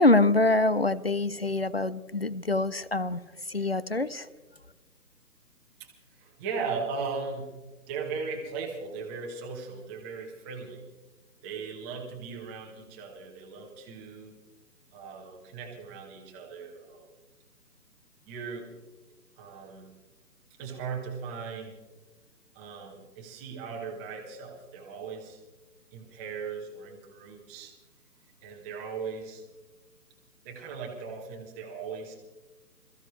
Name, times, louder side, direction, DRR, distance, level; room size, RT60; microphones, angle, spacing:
voice 1, 0.0-3.2 3.5-4.3, left 2 dB, 40° left, 17 dB, 0.4 m, -25 dB
voice 2, 5.8-7.6 7.9-10.9 11.4-14.4 14.9-17.1 18.2-18.7 19.4-19.9 20.6-21.8 22.5-25.4 25.9-27.7 28.4-29.4 30.4-32.1, right 5 dB, 10° right, 0 dB, 1.1 m, -38 dB
27.5 x 15.0 x 3.2 m, 1.2 s
figure-of-eight pair, 150°, 50 cm